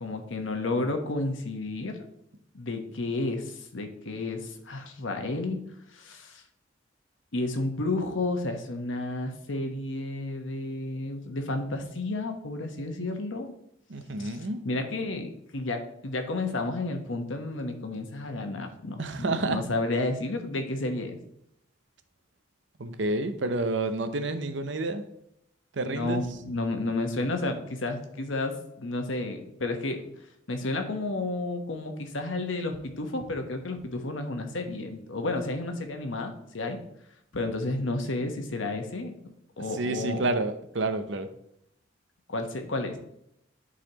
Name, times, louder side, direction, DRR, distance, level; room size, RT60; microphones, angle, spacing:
voice 1, 0.0-2.0 2.5-5.6 5.9-6.4 7.3-13.5 14.2-14.4 14.6-21.2 25.8-30.0 30.5-36.8 37.3-39.1 39.6-40.2 42.3-43.0, left 2 dB, 90° left, 5 dB, 1.1 m, -31 dB
voice 2, 13.9-14.6 19.0-19.6 22.8-25.0 25.7-26.2 39.6-41.3, right 2 dB, 75° right, 9 dB, 0.7 m, -29 dB
11.0 x 4.1 x 2.9 m, 0.76 s
head